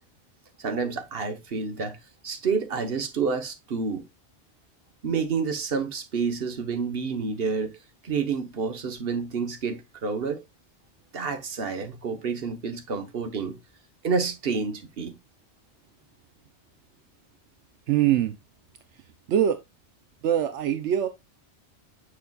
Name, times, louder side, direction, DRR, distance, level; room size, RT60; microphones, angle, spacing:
voice 1, 0.6-2.0 2.2-4.0 5.0-7.7 8.0-10.4 11.1-13.6 14.0-15.2, right 5 dB, 55° right, 1.3 m, -29 dB
voice 2, 17.9-18.4 19.3-19.6 20.2-21.1, right 10 dB, 80° right, 1.0 m, -23 dB
7.4 x 6.8 x 2.3 m
omnidirectional pair, 1.2 m